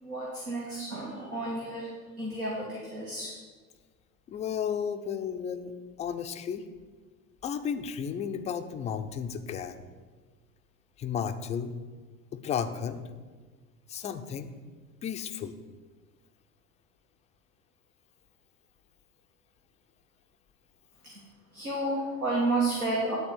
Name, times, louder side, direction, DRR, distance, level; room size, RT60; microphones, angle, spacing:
voice 1, 0.0-1.9 2.2-3.3 21.0-21.1 21.5-23.2, right 2 dB, 90° right, -4 dB, 1.5 m, -31 dB
voice 2, 4.3-5.7 6.0-6.6 7.4-9.8 11.0-11.7 12.3-13.0 13.9-14.5 15.0-15.5, left 7 dB, 20° left, 8 dB, 0.3 m, -33 dB
10.0 x 4.1 x 6.9 m, 1.4 s
figure-of-eight pair, 70°, 42 cm